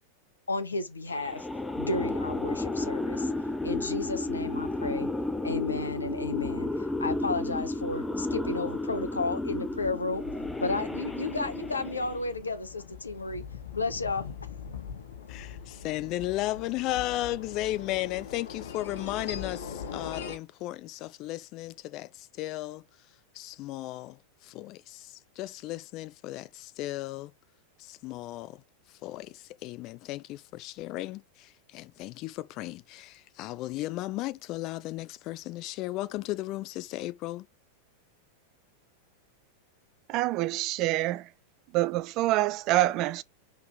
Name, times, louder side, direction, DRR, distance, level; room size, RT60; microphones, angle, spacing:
voice 1, 0.5-1.5 1.8-3.3 3.6-5.1 5.4-10.2 10.6-13.4 13.7-14.2, left 3 dB, 75° left, 1.1 m, -32 dB
sound 1, 1.1-12.3, left 2 dB, 5° left, 0.9 m, -32 dB
sound 2, 9.6-20.4, left 7 dB, 60° left, 1.6 m, -42 dB
voice 2, 15.3-22.8 23.3-27.3 27.8-28.6 29.0-37.5, left 16 dB, 40° left, 0.5 m, -35 dB
voice 3, 40.1-41.3 41.7-43.2, right 16 dB, 40° right, 0.4 m, -26 dB
5.7 x 3.6 x 4.7 m
figure-of-eight pair, 90°, 0 cm